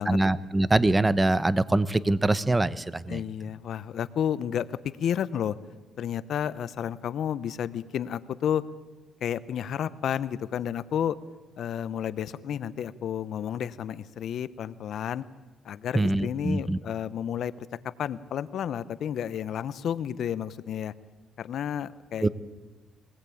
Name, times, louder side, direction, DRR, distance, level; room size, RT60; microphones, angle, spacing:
voice 1, 0.0-3.2 15.9-16.8 22.2-22.3, right 2 dB, 15° right, 16 dB, 0.9 m, -24 dB
voice 2, 3.1-5.6 6.0-8.6 9.2-11.2 11.6-15.2 15.6-17.7 18.0-20.9 21.4-22.3, left 9 dB, 70° left, 15 dB, 0.9 m, -31 dB
23.0 x 19.0 x 8.6 m, 1.3 s
cardioid pair, 90°, 0 cm